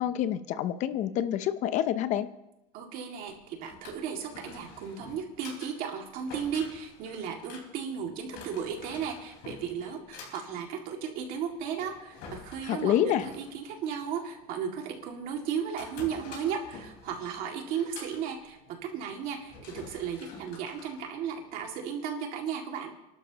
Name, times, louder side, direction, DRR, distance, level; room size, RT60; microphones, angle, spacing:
voice 1, 0.0-2.3 12.6-13.3, left 11 dB, 45° left, 13 dB, 0.7 m, -27 dB
voice 2, 2.7-22.9, right 7 dB, 55° right, 2 dB, 2.3 m, -35 dB
Drawer open or close, 3.3-21.8, left 4 dB, 60° left, 4.9 m, -49 dB
28.5 x 12.0 x 3.0 m, 0.91 s
cardioid pair, 165°, 18 cm